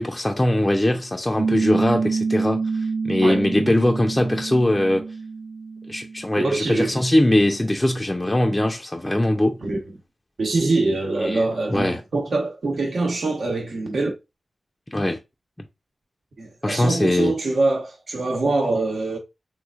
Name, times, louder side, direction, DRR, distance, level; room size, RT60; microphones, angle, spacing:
voice 1, 0.0-5.1 5.9-9.6 11.2-12.0 14.9-15.2 16.6-17.3, left 1 dB, 20° left, 0.5 m, -21 dB
Piano, 1.4-6.5, right 4 dB, 35° right, 0.6 m, -27 dB
voice 2, 6.4-7.0 9.6-9.8 10.4-14.1 16.4-19.2, right 3 dB, 70° right, 1.0 m, -24 dB
3.3 x 3.1 x 2.3 m
cardioid pair, 55°, 0 cm